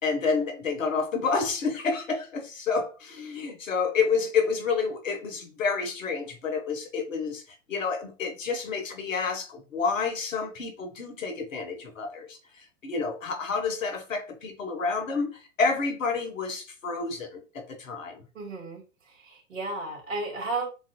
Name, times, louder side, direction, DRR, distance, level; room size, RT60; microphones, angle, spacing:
voice 1, 0.0-7.4 7.7-18.3, left 5 dB, 90° left, 1.3 m, -29 dB
voice 2, 18.3-18.8 19.1-20.7, right 3 dB, 85° right, 2.4 m, -33 dB
7.2 x 2.6 x 2.3 m
hypercardioid pair, 115°, 38 cm